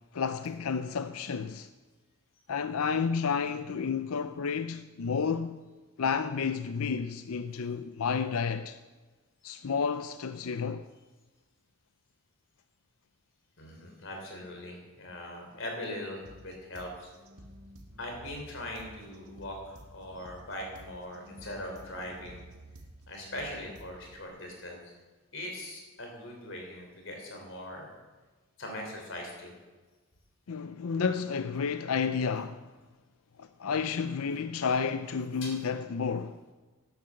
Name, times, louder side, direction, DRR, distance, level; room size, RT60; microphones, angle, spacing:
voice 1, 0.1-1.7 2.5-5.6 6.0-8.8 9.4-10.9 30.5-32.7 33.4-36.4, left 5 dB, 80° left, 0.5 m, -31 dB
voice 2, 13.6-17.1 18.0-22.4 23.1-24.9 25.3-27.9 28.6-29.5 35.4-35.5, left 1 dB, 60° left, 4.0 m, -41 dB
sound 1, 16.3-24.3, equal, 85° right, 1.8 m, -51 dB
12.0 x 10.0 x 7.7 m
head